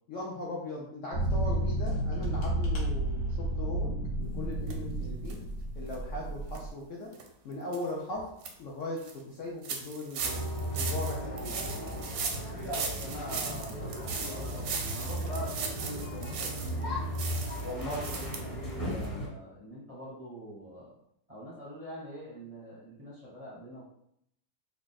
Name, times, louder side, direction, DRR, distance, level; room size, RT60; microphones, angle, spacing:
voice 1, 0.1-5.4 5.8-7.1 7.4-8.3 8.6-10.4 10.7-11.6 17.6-18.1, left 2 dB, 80° left, -3 dB, 0.7 m, -38 dB
sound 1, 1.1-6.7, right 1 dB, 55° left, 1.0 m, -31 dB
sound 2, 4.7-4.8 5.3-5.4 5.9-6.0 6.5-6.6 7.1-7.3 7.7-7.8 8.2-8.5 9.0-9.1 9.6-16.8 17.1-18.4 18.7-18.8 19.0-19.1, right 5 dB, 70° right, 0.9 m, -38 dB
sound 3, 10.2-19.3, equal, 20° left, 0.6 m, -36 dB
voice 2, 12.6-17.0 17.9-20.9 21.3-23.9, equal, 40° right, -7 dB, 0.5 m, -44 dB
3.5 x 2.3 x 4.0 m, 0.74 s
omnidirectional pair, 2.1 m